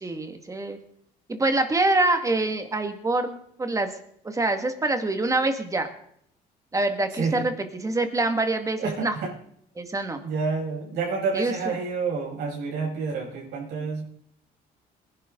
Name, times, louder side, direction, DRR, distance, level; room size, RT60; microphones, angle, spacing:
voice 1, 0.0-0.8 1.3-4.0 4.2-5.9 6.7-9.1 9.8-10.2 11.3-11.5, right 2 dB, 20° right, 7 dB, 1.9 m, -25 dB
voice 2, 7.1-7.4 8.8-9.3 10.2-14.0, right 4 dB, 85° right, -3 dB, 6.2 m, -29 dB
20.5 x 11.0 x 3.9 m, 0.69 s
cardioid pair, 110°, 17 cm